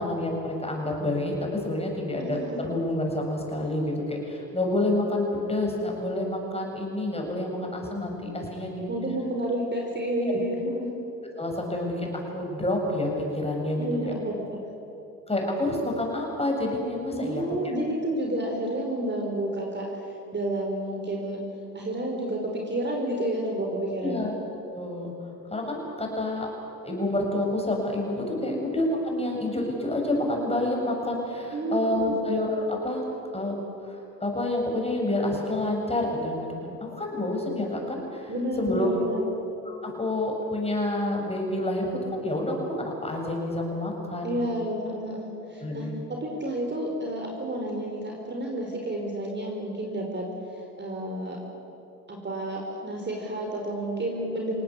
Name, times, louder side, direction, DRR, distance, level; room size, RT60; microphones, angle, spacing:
voice 1, 0.0-8.9 10.3-10.4 11.4-14.1 15.3-17.6 24.0-24.3 24.6-25.1 25.5-26.5 26.8-33.0 33.3-33.5 33.8-38.3 38.6-39.0 39.6-44.4 45.6-46.0, left 1 dB, 15° left, 0 dB, 7.4 m, -28 dB
voice 2, 2.3-2.6 8.9-10.9 13.8-14.3 17.1-19.9 20.3-21.4 21.7-24.3 28.4-28.6 31.5-32.2 38.3-39.3 44.2-50.3 50.8-51.4 52.1-54.6, right 1 dB, 25° right, 1 dB, 4.6 m, -30 dB
28.0 x 18.0 x 8.5 m, 3.0 s
hypercardioid pair, 65°, 45 cm